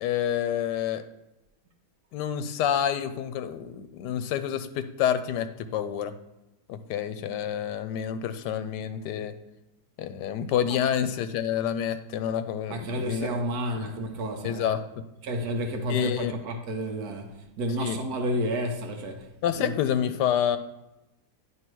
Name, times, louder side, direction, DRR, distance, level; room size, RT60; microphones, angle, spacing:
voice 1, 0.0-1.0 2.1-4.7 5.0-6.1 6.7-9.3 10.0-13.3 13.8-13.9 14.4-14.9 15.9-16.3 17.8-18.0 19.4-20.6, left 9 dB, 85° left, 1.2 m, -28 dB
voice 2, 12.7-14.7 15.2-19.7, equal, 70° right, 1.2 m, -31 dB
9.4 x 3.2 x 4.5 m
omnidirectional pair, 1.8 m